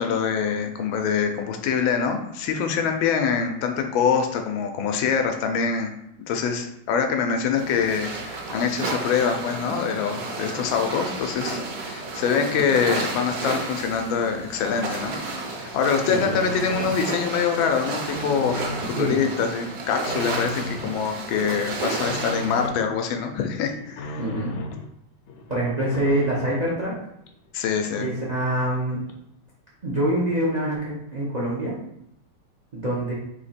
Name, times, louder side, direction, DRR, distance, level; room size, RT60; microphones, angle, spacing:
voice 1, 0.0-5.9 6.3-15.2 15.5-18.7 19.0-24.2 27.5-28.1, left 6 dB, 90° left, 5 dB, 1.4 m, -24 dB
sound 1, 7.6-22.7, right 3 dB, 65° right, 1.1 m, -32 dB
sound 2, 15.4-17.0 17.4-19.0 19.4-21.0 21.3-22.9 23.3-24.9 25.3-26.8 27.3-27.4 27.6-27.7 27.9-28.8 29.1-29.2, left 1 dB, 75° left, 1.1 m, -36 dB
voice 2, 16.1-16.4 19.0-19.2 24.2-24.6 25.5-26.9 28.0-29.0 29.8-31.8 32.7-33.1, right 1 dB, 80° right, -5 dB, 0.3 m, -25 dB
3.8 x 2.9 x 4.2 m, 0.79 s
omnidirectional pair, 2.1 m